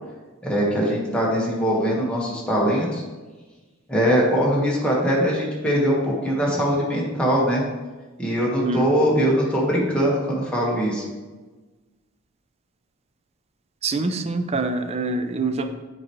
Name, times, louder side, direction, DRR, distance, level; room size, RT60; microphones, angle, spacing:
voice 1, 0.4-3.0 3.9-7.6 8.2-11.0, equal, 5° left, -4 dB, 1.3 m, -21 dB
voice 2, 8.6-9.1 13.8-15.7, right 2 dB, 30° right, 8 dB, 0.4 m, -25 dB
7.5 x 4.6 x 3.0 m, 1.3 s
head